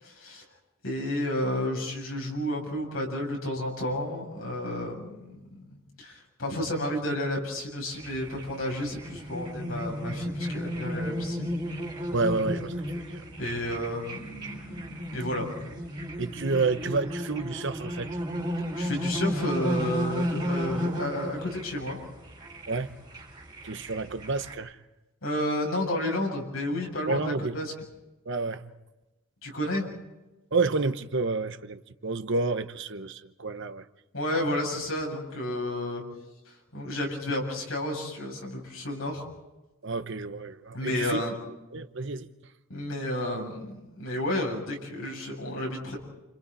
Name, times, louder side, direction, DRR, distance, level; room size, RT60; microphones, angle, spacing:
voice 1, 0.0-0.4 0.8-11.5 13.4-15.5 18.8-22.0 25.2-27.7 29.4-29.9 34.1-36.0 36.7-39.3 40.7-41.3 42.7-46.0, left 1 dB, 75° left, 7.9 m, -31 dB
sound 1, 7.9-24.5, equal, 20° right, 6.8 m, -33 dB
voice 2, 12.1-13.2 16.2-18.1 22.7-22.9 23.6-24.8 27.0-27.6 28.2-28.7 30.5-33.8 39.8-41.2 41.7-42.3, right 3 dB, 60° right, 1.1 m, -30 dB
30.0 x 28.5 x 4.2 m
head